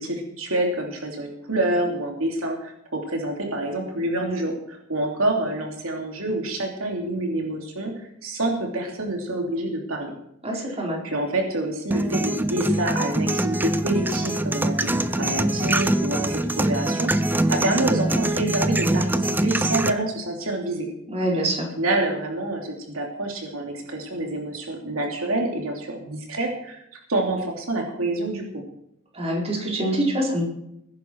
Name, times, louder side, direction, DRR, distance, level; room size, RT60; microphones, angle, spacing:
voice 1, 0.0-10.1 10.6-10.7 11.0-20.9 21.8-26.8 27.1-28.6, right 1 dB, 80° right, 1 dB, 3.0 m, -27 dB
voice 2, 10.4-11.0 21.1-21.7 29.1-30.4, right 1 dB, 30° right, -2 dB, 4.5 m, -25 dB
sound 1, 11.9-19.9, right 1 dB, 10° right, 0.7 m, -24 dB
21.0 x 10.5 x 4.7 m, 0.77 s
head